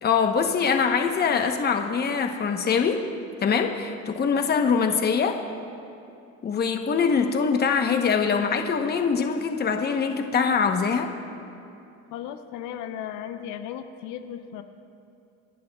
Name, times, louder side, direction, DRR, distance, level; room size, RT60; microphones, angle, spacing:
voice 1, 0.0-3.0 3.4-5.4 6.4-11.1, left 6 dB, 35° left, 5 dB, 0.9 m, -23 dB
voice 2, 12.1-14.6, left 9 dB, 85° left, 8 dB, 0.7 m, -36 dB
28.0 x 11.0 x 2.3 m, 2.6 s
cardioid pair, 125°, 29 cm